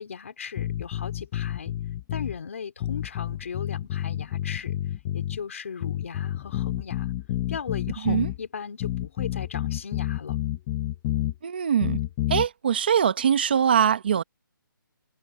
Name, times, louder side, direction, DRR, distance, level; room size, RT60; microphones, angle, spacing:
voice 1, 0.0-1.7 2.1-4.8 5.1-7.1 7.5-10.4, left 6 dB, 40° left, 4.2 m, -37 dB
sound 1, 0.6-2.4 2.8-5.4 5.8-8.4 8.8-11.4 11.8-12.5, left 13 dB, 10° left, 1.1 m, -29 dB
voice 2, 11.4-12.0 12.3-14.2, right 8 dB, 30° right, 1.1 m, -22 dB
hypercardioid pair, 180°, 11 cm